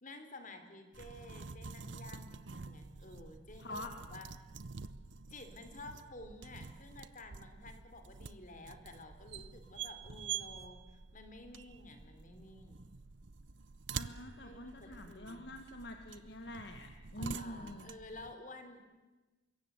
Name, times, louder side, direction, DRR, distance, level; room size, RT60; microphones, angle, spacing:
voice 1, 0.0-3.8 4.1-4.3 5.3-12.9 14.4-15.4 17.1-18.9, left 2 dB, 45° left, 8 dB, 3.3 m, -52 dB
sound 1, 0.9-18.3, right 6 dB, 70° right, 0.8 m, -47 dB
voice 2, 3.6-3.9 13.9-17.9, left 1 dB, 60° left, 5 dB, 1.8 m, -46 dB
25.0 x 22.0 x 8.3 m, 1.2 s
head